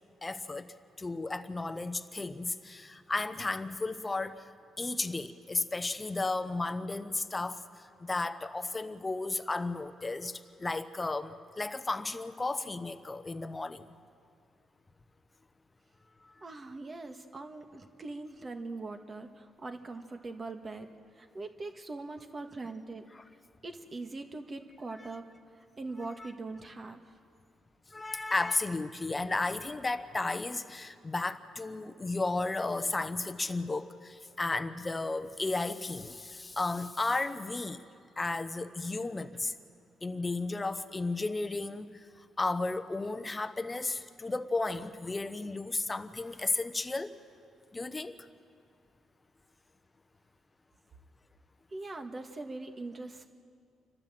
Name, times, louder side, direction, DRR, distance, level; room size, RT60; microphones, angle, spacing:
voice 1, 0.2-4.5 4.8-13.9 16.2-16.3 27.9-37.8 38.2-39.5 40.0-47.1 47.7-48.3, left 3 dB, 20° left, 11 dB, 1.0 m, -34 dB
voice 2, 16.4-20.9 21.2-23.1 23.6-25.2 25.8-27.0 51.7-53.3, right 3 dB, 35° right, 5 dB, 1.7 m, -41 dB
29.0 x 12.5 x 7.7 m, 2.3 s
cardioid pair, 90°, 0 cm